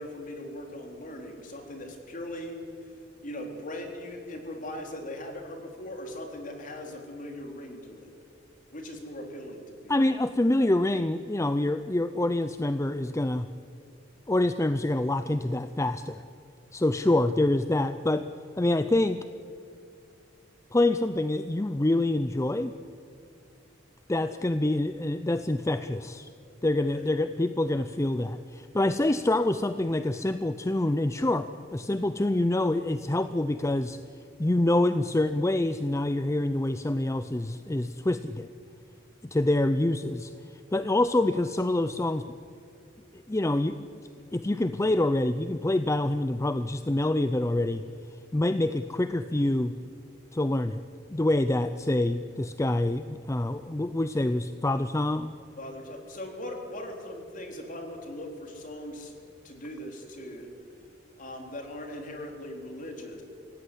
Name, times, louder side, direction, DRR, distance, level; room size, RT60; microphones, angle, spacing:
voice 1, 0.0-2.6 3.2-8.1 8.7-9.9 26.7-27.0 55.6-59.1 59.4-60.5 61.2-63.2, left 1 dB, 45° left, 3 dB, 3.9 m, -39 dB
voice 2, 9.9-13.5 14.3-16.2 16.7-18.3 18.6-19.3 20.7-22.7 24.1-26.3 26.6-34.0 34.4-38.5 39.2-40.3 40.7-42.3 43.1-43.8 44.3-47.8 48.3-49.7 50.3-50.8 51.1-55.3, left 1 dB, 15° left, 11 dB, 0.5 m, -26 dB
25.5 x 17.0 x 9.9 m, 2.5 s
head